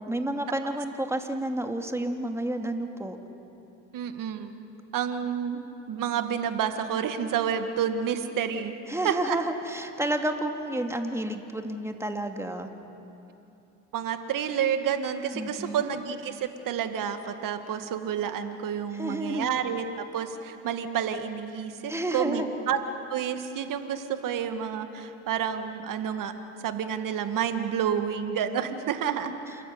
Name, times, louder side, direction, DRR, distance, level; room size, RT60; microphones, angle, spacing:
voice 1, 0.0-3.2 8.9-12.7 15.3-15.8 18.9-19.5 21.9-22.5, right 1 dB, 5° right, 4 dB, 2.5 m, -30 dB
voice 2, 3.9-4.6 4.9-8.8 9.0-9.4 13.9-22.8 23.1-26.3 26.6-29.3, right 8 dB, 60° right, 8 dB, 2.0 m, -29 dB
28.0 x 14.0 x 9.6 m, 2.9 s
hypercardioid pair, 65°, 37 cm